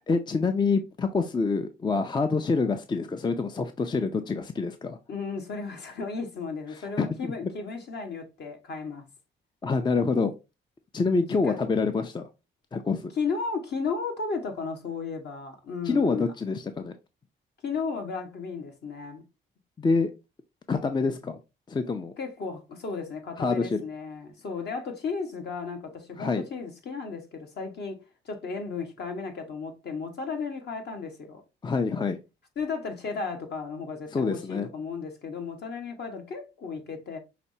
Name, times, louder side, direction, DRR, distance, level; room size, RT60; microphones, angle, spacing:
voice 1, 0.1-5.0 7.0-7.3 9.6-10.3 10.9-12.3 12.7-13.0 15.9-16.9 19.8-20.1 20.7-21.4 21.7-22.1 23.4-23.8 26.2-26.4 31.6-32.2 34.1-34.7, left 4 dB, 20° left, 0.5 m, -26 dB
voice 2, 5.1-9.1 11.3-11.6 13.2-16.2 17.6-19.2 22.2-28.0 28.2-31.4 32.6-37.2, left 4 dB, 55° left, 1.5 m, -34 dB
5.8 x 3.2 x 2.7 m
cardioid pair, 90°, 20 cm